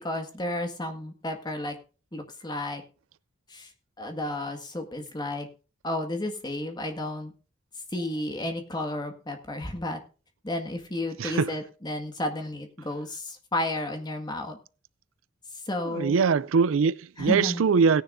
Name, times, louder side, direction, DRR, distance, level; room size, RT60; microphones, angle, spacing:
voice 1, 0.0-1.8 2.1-2.8 3.5-3.7 4.0-5.5 5.8-7.3 7.9-10.0 10.4-14.6 15.5-16.2 17.2-17.6, left 1 dB, 20° left, 1.8 m, -32 dB
voice 2, 11.2-11.5 15.9-18.0, right 5 dB, 80° right, 0.4 m, -22 dB
17.5 x 10.0 x 2.6 m
head